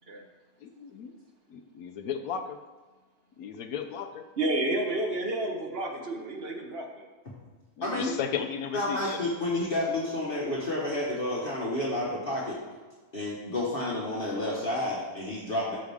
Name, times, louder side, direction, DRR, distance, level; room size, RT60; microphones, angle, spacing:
voice 1, 0.6-1.1 1.5-2.6 3.4-4.2 7.8-9.2, left 7 dB, 80° left, 7 dB, 1.1 m, -35 dB
voice 2, 4.4-7.1, right 2 dB, 45° right, 2 dB, 1.2 m, -30 dB
voice 3, 7.8-8.1 8.7-12.6 13.1-15.8, left 1 dB, 40° left, -5 dB, 1.5 m, -30 dB
12.5 x 6.4 x 3.5 m, 1.3 s
omnidirectional pair, 1.5 m